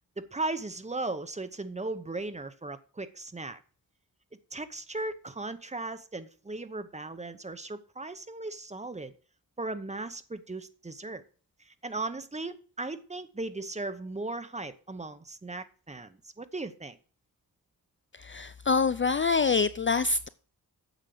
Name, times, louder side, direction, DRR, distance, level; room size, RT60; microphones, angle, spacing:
voice 1, 0.2-3.6 4.5-9.1 9.6-11.2 11.7-17.0, right 2 dB, 20° right, 0.9 m, -37 dB
voice 2, 18.1-20.3, left 4 dB, 35° left, 0.4 m, -26 dB
9.1 x 7.3 x 6.5 m
wide cardioid pair, 140°, 36 cm